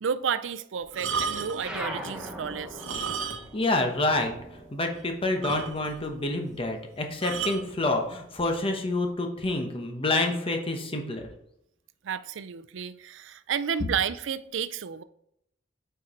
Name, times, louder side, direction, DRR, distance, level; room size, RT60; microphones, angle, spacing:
voice 1, 0.0-2.8 12.0-15.0, right 7 dB, 75° right, 0.4 m, -31 dB
sound 1, 0.9-1.7 2.7-3.7 3.9-4.1 4.6-4.7 4.9-5.0 5.4-6.1 7.2-7.7 8.5-8.8, right 5 dB, 90° right, 0.9 m, -33 dB
sound 2, 1.6-6.4 6.8-8.2, equal, 5° right, 1.0 m, -41 dB
voice 2, 3.5-4.3 4.7-11.3, left 2 dB, 30° left, 1.0 m, -28 dB
8.6 x 4.6 x 4.4 m
head